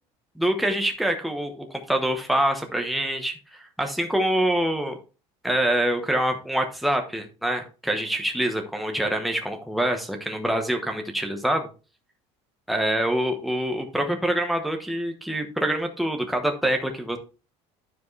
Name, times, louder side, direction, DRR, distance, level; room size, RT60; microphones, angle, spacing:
voice 1, 0.4-5.0 5.4-11.7 12.7-17.2, right 1 dB, ahead, 4 dB, 0.9 m, -25 dB
12.0 x 4.9 x 3.2 m, 0.32 s
cardioid pair, 170°, 14 cm